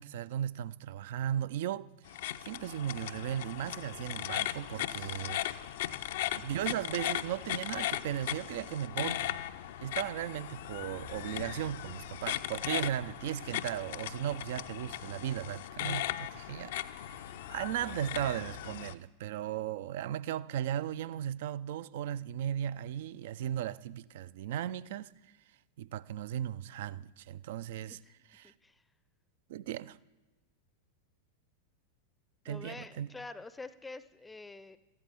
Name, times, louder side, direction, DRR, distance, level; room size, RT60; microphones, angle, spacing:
voice 1, 0.0-1.9 2.1-5.4 6.3-9.4 9.8-25.1 25.8-28.0 28.3-28.5 29.5-30.0 32.5-33.1, right 11 dB, 55° right, 0.4 m, -36 dB
sound 1, 2.1-18.9, left 13 dB, 55° left, 0.4 m, -38 dB
sound 2, 4.4-17.6, right 5 dB, 80° right, 3.8 m, -62 dB
voice 2, 28.4-28.7 32.5-34.8, left 3 dB, 10° left, 0.5 m, -46 dB
14.5 x 12.0 x 3.5 m
figure-of-eight pair, 90°, 0 cm